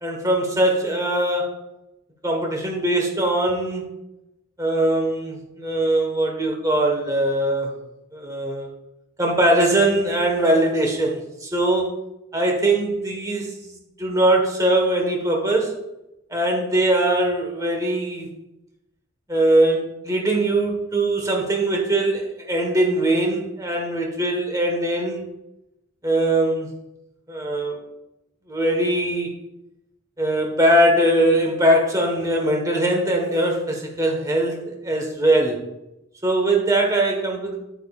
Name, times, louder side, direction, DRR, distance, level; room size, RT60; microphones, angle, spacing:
voice 1, 0.0-1.5 2.2-3.8 4.6-7.7 8.1-8.7 9.2-11.9 12.3-13.7 14.0-15.7 16.3-18.3 19.3-25.3 26.0-26.7 27.3-27.8 28.5-29.3 30.2-35.6 36.2-37.6, right 1 dB, 15° right, 1 dB, 1.3 m, -21 dB
9.5 x 9.1 x 2.4 m, 0.92 s
head